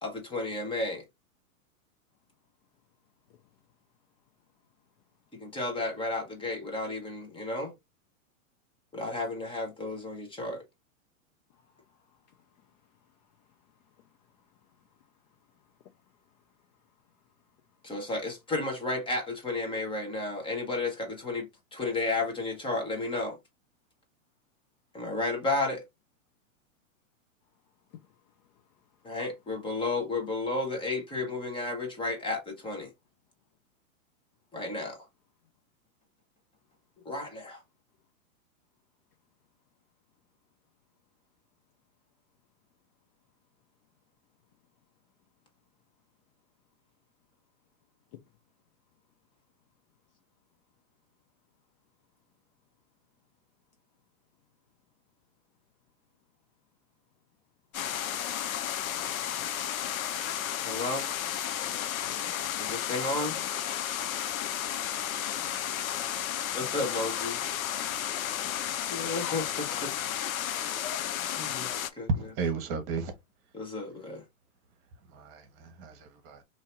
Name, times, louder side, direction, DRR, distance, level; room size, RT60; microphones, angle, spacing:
voice 1, 0.0-1.0 5.3-7.7 8.9-10.6 17.8-23.4 24.9-25.8 29.0-32.9 34.5-35.0 37.0-37.6 60.6-61.1 62.6-63.4 66.5-67.4 68.9-69.9 71.4-72.1 73.5-74.2, left 2 dB, 10° left, 1.1 m, -32 dB
voice 2, 11.5-17.8 27.9-29.2 48.1-48.2, left 11 dB, 35° left, 0.4 m, -61 dB
zoo waterfall, 57.7-71.9, left 10 dB, 75° left, 0.7 m, -33 dB
voice 3, 72.1-73.1 75.1-76.4, right 5 dB, 45° right, 1.2 m, -35 dB
2.8 x 2.8 x 4.4 m
hypercardioid pair, 130°, 42 cm